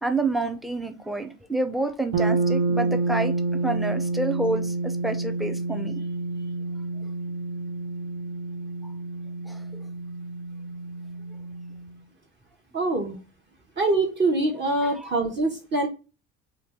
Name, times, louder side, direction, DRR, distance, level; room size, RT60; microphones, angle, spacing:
voice 1, 0.0-3.3 3.6-4.7 5.0-6.0 9.5-9.8 15.0-15.1, right 2 dB, ahead, 8 dB, 0.4 m, -28 dB
sound 1, 2.1-11.9, right 3 dB, 70° right, 0.7 m, -29 dB
voice 2, 12.7-13.2 13.8-15.9, right 2 dB, 35° right, 2 dB, 0.9 m, -24 dB
2.5 x 2.3 x 3.3 m, 0.32 s
hypercardioid pair, 70°, 33 cm